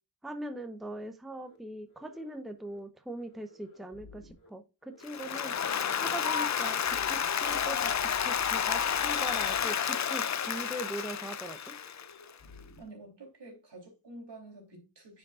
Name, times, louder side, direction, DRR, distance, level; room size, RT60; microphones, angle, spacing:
voice 1, 0.2-5.5 6.0-11.7, right 1 dB, ahead, 0.7 m, -41 dB
sound 1, 1.4-1.6 1.9-2.4 2.6-2.8 3.1-4.5 4.8-5.3 5.6-5.7 6.0-9.6 9.9-10.0 10.4-10.9 11.1-11.3 11.6-12.8, left 3 dB, 75° left, 2.5 m, -53 dB
Applause, 5.0-12.2, left 8 dB, 40° left, 0.5 m, -30 dB
voice 2, 12.8-15.2, right 2 dB, 70° right, 3.4 m, -49 dB
9.6 x 5.2 x 2.4 m
wide cardioid pair, 80°, 43 cm